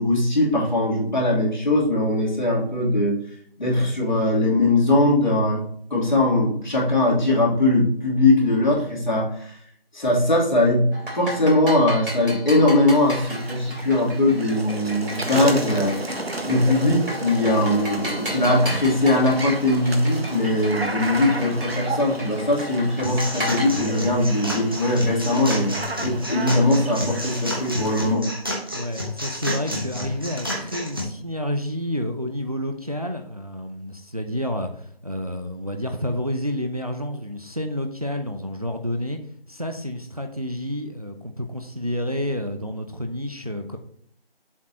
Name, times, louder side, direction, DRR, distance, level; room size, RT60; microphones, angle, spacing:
voice 1, 0.0-3.2 3.6-5.6 5.9-9.6 9.9-10.9 11.1-16.0 16.4-28.3, left 1 dB, 50° left, -3 dB, 2.9 m, -20 dB
sound 1, 10.9-23.6, equal, 65° right, 3.0 m, -35 dB
sound 2, 12.9-28.1, right 2 dB, 80° right, 1.4 m, -33 dB
sound 3, 23.0-31.0, left 1 dB, 25° right, 1.0 m, -30 dB
voice 2, 28.7-39.2 39.5-43.8, equal, 40° right, 6 dB, 0.6 m, -29 dB
7.3 x 4.5 x 4.3 m, 0.63 s
figure-of-eight pair, 175°, 30 cm